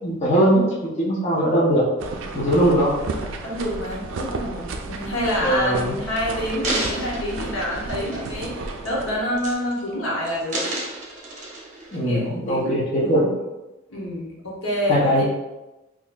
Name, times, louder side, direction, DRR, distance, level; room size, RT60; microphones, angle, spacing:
voice 1, 0.0-1.8 2.3-3.0 5.4-5.9 11.9-13.3 14.9-15.2, right 1 dB, 30° left, -7 dB, 0.7 m, -20 dB
sound 1, 2.0-9.5, right 3 dB, 65° right, 0.4 m, -33 dB
voice 2, 3.4-10.6 11.9-13.1 13.9-15.2, equal, 70° left, -4 dB, 1.0 m, -27 dB
sound 2, 5.7-5.8 6.4-8.5 8.8-9.1 9.4-9.9 10.2-12.0 12.5-12.6, right 2 dB, 35° right, 0.9 m, -31 dB
4.1 x 2.9 x 2.3 m, 1.0 s
head